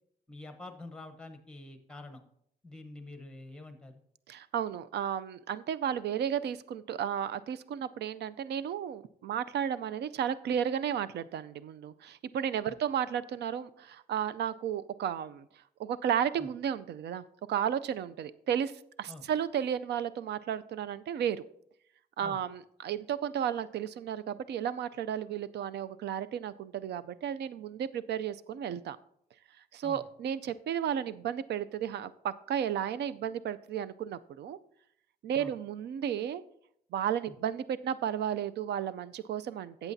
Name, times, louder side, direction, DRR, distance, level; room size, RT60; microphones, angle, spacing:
voice 1, 0.3-2.2 2.6-3.9 12.7-12.8 16.4-16.5 19.1-19.3 22.2-22.4 29.8-30.0 35.3-35.5 37.3-37.4, left 2 dB, 5° left, 7 dB, 0.9 m, -47 dB
voice 2, 4.3-15.5 15.8-17.2 17.5-18.7 19.0-21.5 22.2-29.0 29.7-34.6 35.2-36.4 36.9-39.9, right 9 dB, 85° right, 15 dB, 0.4 m, -33 dB
14.0 x 8.1 x 2.7 m, 0.72 s
wide cardioid pair, 160°, 17 cm